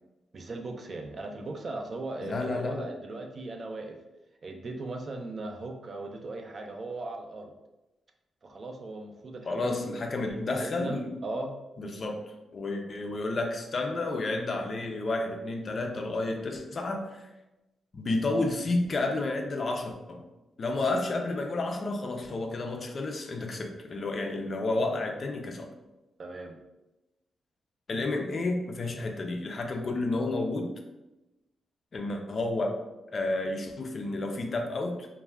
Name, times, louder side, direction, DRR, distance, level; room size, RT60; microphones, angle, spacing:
voice 1, 0.3-4.0 4.4-7.5 8.4-9.9 10.3-11.5 26.2-26.6, right 2 dB, 40° right, 3 dB, 0.3 m, -38 dB
voice 2, 2.2-2.9 9.5-11.2 11.8-12.2 12.5-17.3 17.9-20.2 20.6-25.7 27.9-30.7 31.9-32.8 33.1-35.1, left 2 dB, 40° left, 3 dB, 0.3 m, -31 dB
2.3 x 2.1 x 3.2 m, 0.99 s
wide cardioid pair, 135°, 0 cm